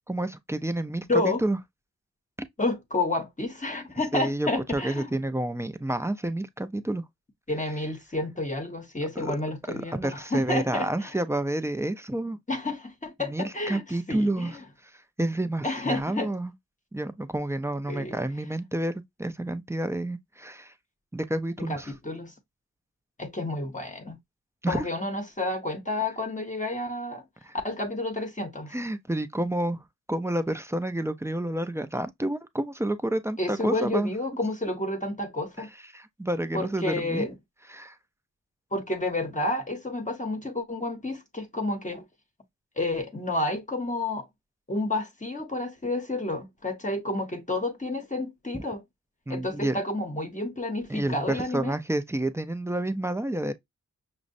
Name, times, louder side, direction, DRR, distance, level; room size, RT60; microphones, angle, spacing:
voice 1, 0.1-1.6 4.1-7.0 9.2-9.4 9.7-12.4 13.2-14.6 14.9-16.5 16.9-20.7 21.1-21.9 24.6-24.9 27.4-27.5 28.7-29.8 30.1-34.1 35.6-35.7 35.9-37.3 37.7-38.0 49.3-49.8 50.9-53.5, right 1 dB, 10° right, 0.3 m, -29 dB
voice 2, 1.0-1.4 2.6-5.2 7.5-11.1 12.5-13.8 14.1-14.6 15.6-16.3 17.9-18.2 21.6-22.3 23.2-24.2 24.7-27.2 27.6-28.7 33.4-35.7 36.5-37.3 38.7-42.0 42.8-44.3 44.7-48.8 49.3-51.8, left 2 dB, 25° left, 0.7 m, -30 dB
6.0 x 2.0 x 2.5 m
wide cardioid pair, 120°, 32 cm